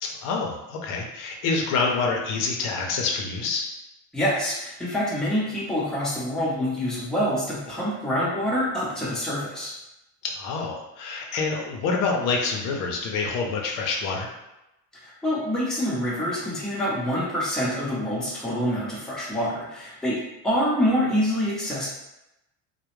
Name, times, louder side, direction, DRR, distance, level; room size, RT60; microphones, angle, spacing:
voice 1, 0.0-3.7 10.2-14.3, left 4 dB, 70° left, 1 dB, 0.6 m, -27 dB
voice 2, 4.1-9.7 15.0-21.9, equal, ahead, -7 dB, 0.7 m, -26 dB
2.2 x 2.0 x 3.0 m, 0.91 s
cardioid pair, 115°, 33 cm